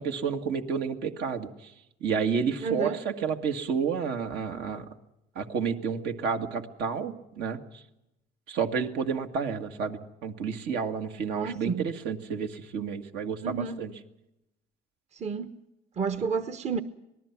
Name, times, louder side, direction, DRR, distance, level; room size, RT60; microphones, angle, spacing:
voice 1, 0.0-1.7 2.0-4.9 5.4-7.8 8.5-13.9, right 6 dB, 75° right, 2.0 m, -30 dB
voice 2, 2.6-3.0 11.3-11.9 13.4-13.8 15.1-15.6 16.0-16.8, right 5 dB, 40° right, 1.1 m, -31 dB
26.5 x 19.0 x 6.0 m
cardioid pair, 110°, 17 cm